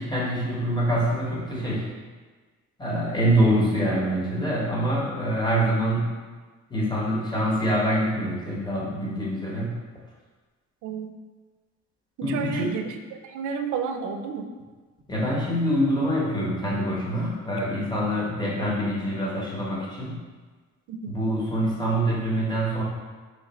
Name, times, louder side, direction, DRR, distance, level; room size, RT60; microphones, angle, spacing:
voice 1, 0.0-1.9 2.8-6.1 6.7-9.8 12.2-12.8 15.1-20.2 21.1-22.8, equal, 15° left, -5 dB, 1.1 m, -25 dB
voice 2, 12.2-13.0 13.2-14.5 20.9-21.1, right 6 dB, 80° right, 7 dB, 0.5 m, -31 dB
3.2 x 2.5 x 4.1 m, 1.4 s
cardioid pair, 90°, 30 cm